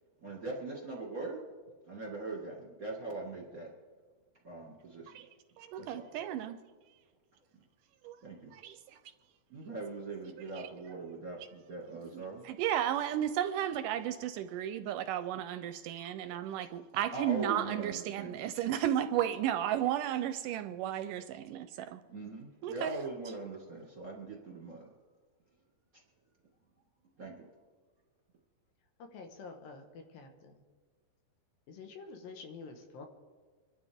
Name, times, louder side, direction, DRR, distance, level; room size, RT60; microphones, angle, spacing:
voice 1, 0.2-1.4 1.9-3.7 4.4-5.2 5.8-6.1 8.2-8.5 9.5-12.4 17.1-18.4 22.1-24.9 27.2-27.5, right 3 dB, 35° right, -2 dB, 1.5 m, -41 dB
voice 2, 5.6-6.6 8.0-8.2 8.5-8.8 10.5-10.6 12.1-22.0 22.6-22.9, right 11 dB, 80° right, 10 dB, 2.0 m, -34 dB
voice 3, 29.0-30.6 31.7-33.1, left 4 dB, 80° left, 4 dB, 3.1 m, -48 dB
25.0 x 12.0 x 3.5 m, 1.5 s
omnidirectional pair, 4.0 m